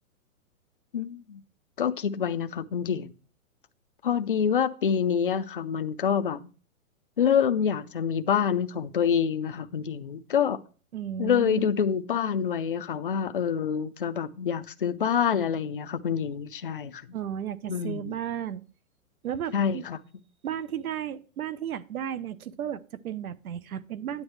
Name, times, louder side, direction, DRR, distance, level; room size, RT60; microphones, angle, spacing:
voice 1, 0.9-1.4 1.8-3.1 4.0-6.5 7.2-10.6 11.2-17.0 17.7-18.1 19.5-20.0, left 7 dB, 40° left, 0.4 m, -26 dB
voice 2, 10.9-11.7 17.1-18.6 19.2-19.8 20.4-24.2, right 10 dB, 80° right, 0.9 m, -34 dB
9.7 x 8.6 x 3.1 m
hypercardioid pair, 175°, 42 cm